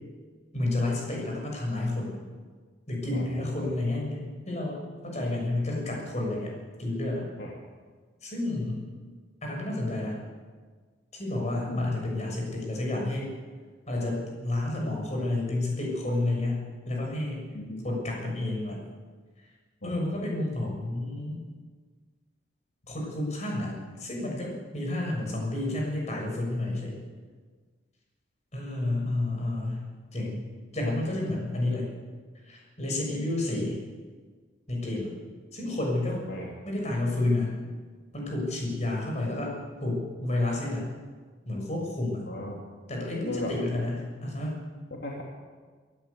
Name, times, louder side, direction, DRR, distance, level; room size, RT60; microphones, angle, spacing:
voice 1, 0.5-2.2 2.9-4.2 4.5-6.5 6.8-7.3 8.2-8.8 9.4-10.2 11.1-13.3 13.9-16.6 16.9-17.4 17.8-18.8 19.8-21.4 22.9-27.0 28.5-29.8 30.1-31.9 32.4-33.8 34.7-35.1 35.5-36.2 36.6-37.6 38.1-39.5 39.8-40.8 41.5-42.3 42.9-44.6, left 2 dB, 35° left, -1 dB, 6.7 m, -30 dB
voice 2, 3.1-3.7 7.4-7.5 11.7-11.9 17.5-17.8 19.8-19.9 36.3-36.5 42.3-42.6 43.2-43.5 44.9-45.2, left 2 dB, 60° left, -2 dB, 2.8 m, -37 dB
25.0 x 12.5 x 8.3 m, 1.5 s
head